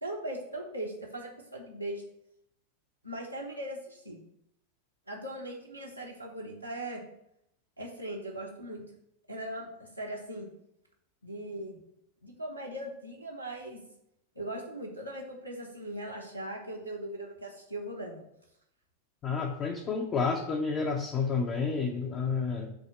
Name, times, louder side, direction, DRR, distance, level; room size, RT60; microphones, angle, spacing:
voice 1, 0.0-2.0 3.0-4.2 5.1-7.0 7.8-8.8 9.3-10.5 11.2-11.8 12.2-13.8 14.3-18.2, right 1 dB, 90° right, -3 dB, 1.0 m, -39 dB
voice 2, 19.2-22.7, left 5 dB, 30° left, 2 dB, 0.7 m, -30 dB
7.6 x 2.8 x 5.7 m, 0.78 s
figure-of-eight pair, 90°, 0 cm